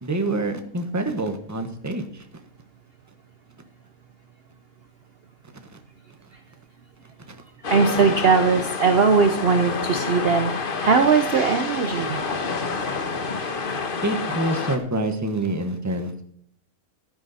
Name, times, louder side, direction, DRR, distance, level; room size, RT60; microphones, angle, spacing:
voice 1, 0.0-2.2 7.3-7.4 14.0-16.2, right 1 dB, 10° right, 7 dB, 1.1 m, -26 dB
sound 1, 7.6-14.8, left 4 dB, 40° left, 1.2 m, -28 dB
voice 2, 7.7-12.2, right 5 dB, 50° right, 8 dB, 0.9 m, -20 dB
11.5 x 10.0 x 4.2 m, 0.65 s
omnidirectional pair, 1.6 m